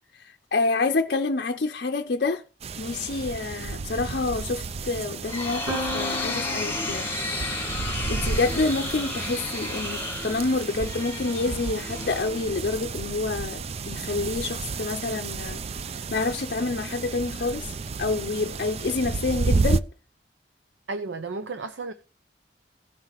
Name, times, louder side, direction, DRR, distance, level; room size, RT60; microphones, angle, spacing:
voice 1, 0.1-2.4 2.8-7.1 8.1-19.9, left 3 dB, 55° left, 0.6 m, -28 dB
sound 1, 2.6-19.8, right 4 dB, 35° right, 0.4 m, -32 dB
sound 2, 4.9-12.8, left 3 dB, 10° left, 1.8 m, -33 dB
Piano, 5.7-11.4, equal, 65° right, 2.7 m, -39 dB
voice 2, 20.9-21.9, right 3 dB, 85° right, 0.7 m, -33 dB
17.0 x 5.7 x 3.0 m
head